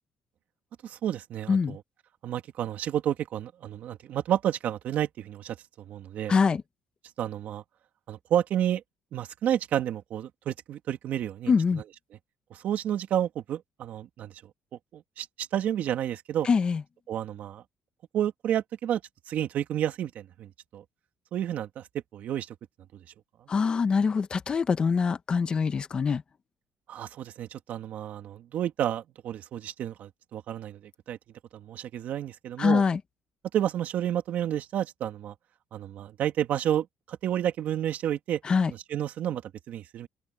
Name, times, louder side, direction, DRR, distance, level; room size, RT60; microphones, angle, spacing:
voice 1, 0.8-1.8 2.2-6.4 7.2-7.6 8.1-8.8 9.1-11.5 12.5-14.3 14.9-16.5 17.1-17.6 18.1-19.0 19.3-20.8 21.3-21.8 22.1-22.5 26.9-30.8 31.1-31.2 31.5-32.8 33.5-35.3 35.7-38.4 38.7-40.1, right 10 dB, 60° right, 2.4 m, -30 dB
voice 2, 6.3-6.6 11.5-11.8 16.4-16.8 23.5-26.2 32.6-33.0 38.4-38.7, left 5 dB, 30° left, 1.3 m, -24 dB
open air
cardioid pair, 130°, 3 cm